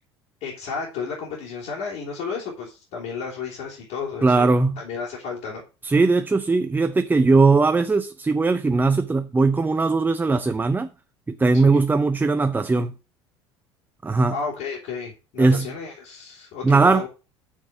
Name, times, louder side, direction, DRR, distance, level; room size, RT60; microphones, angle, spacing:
voice 1, 0.4-5.6 11.5-11.8 14.3-17.1, left 5 dB, 55° left, 3.6 m, -33 dB
voice 2, 4.2-4.8 5.8-10.9 11.3-12.9 14.0-14.4 15.4-15.7 16.6-17.1, right 3 dB, 15° right, 0.7 m, -19 dB
6.8 x 6.5 x 6.8 m
figure-of-eight pair, 65°, 14 cm